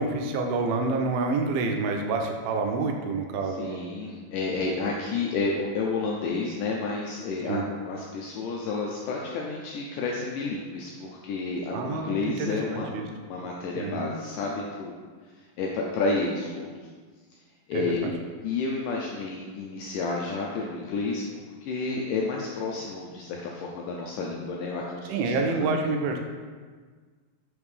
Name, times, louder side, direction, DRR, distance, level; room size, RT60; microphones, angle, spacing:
voice 1, 0.0-3.9 7.5-7.6 11.7-13.1 13.8-14.1 17.7-18.1 25.1-26.2, right 3 dB, 85° right, 3 dB, 2.4 m, -28 dB
voice 2, 3.4-12.9 13.2-14.9 15.6-16.9 17.7-18.1 18.4-25.9, left 3 dB, 85° left, -1 dB, 1.9 m, -31 dB
5.7 x 5.2 x 3.2 m, 1.5 s
omnidirectional pair, 4.2 m